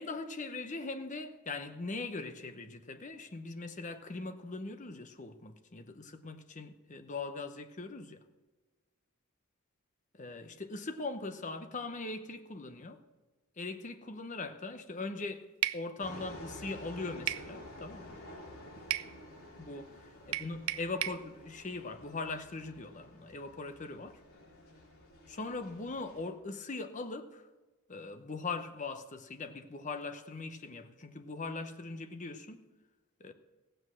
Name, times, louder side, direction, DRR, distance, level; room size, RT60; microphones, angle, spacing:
voice 1, 0.0-8.2 10.1-13.0 13.6-18.2 19.6-24.2 25.3-27.5 27.9-32.7 33.2-33.3, left 3 dB, 35° left, 0.8 m, -41 dB
sound 1, 15.6-15.8 17.3-17.5 18.9-19.1 20.3-21.2, right 13 dB, 70° right, 0.4 m, -33 dB
sound 2, 16.0-26.3, left 1 dB, 75° left, 3.7 m, -51 dB
16.0 x 7.8 x 6.3 m
head